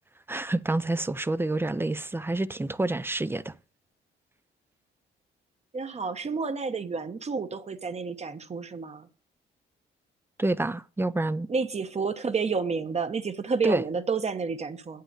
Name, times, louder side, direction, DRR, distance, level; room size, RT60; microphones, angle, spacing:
voice 1, 0.3-3.5 10.4-11.5 13.6-13.8, right 2 dB, 10° right, 0.5 m, -28 dB
voice 2, 5.7-9.1 11.5-15.0, right 5 dB, 35° right, 1.1 m, -30 dB
8.5 x 5.8 x 7.4 m
cardioid pair, 90°, 20 cm